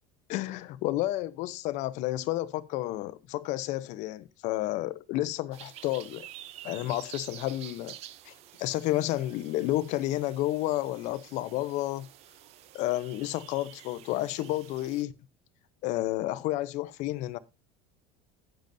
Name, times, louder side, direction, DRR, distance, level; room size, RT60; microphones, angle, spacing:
voice 1, 0.3-6.3 6.6-7.9 8.2-8.3 8.6-12.1 12.7-15.1 15.8-17.4, left 15 dB, 55° left, 0.7 m, -31 dB
sound 1, 5.5-15.0, right 13 dB, 45° right, 0.6 m, -49 dB
10.5 x 8.9 x 2.6 m
cardioid pair, 145°, 14 cm